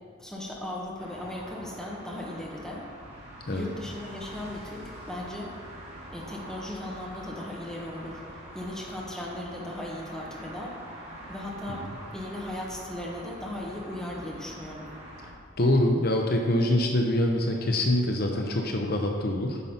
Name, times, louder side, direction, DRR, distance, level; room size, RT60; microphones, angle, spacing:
voice 1, 0.2-2.9 3.5-5.5 6.1-8.2 8.5-10.8 11.3-11.9 12.1-14.9, left 1 dB, 5° left, -4 dB, 1.3 m, -37 dB
sound 1, 1.0-15.3, right 1 dB, 30° right, 2.4 m, -44 dB
voice 2, 15.6-19.6, left 1 dB, 50° left, 2 dB, 0.7 m, -25 dB
9.7 x 5.3 x 5.8 m, 2.1 s
head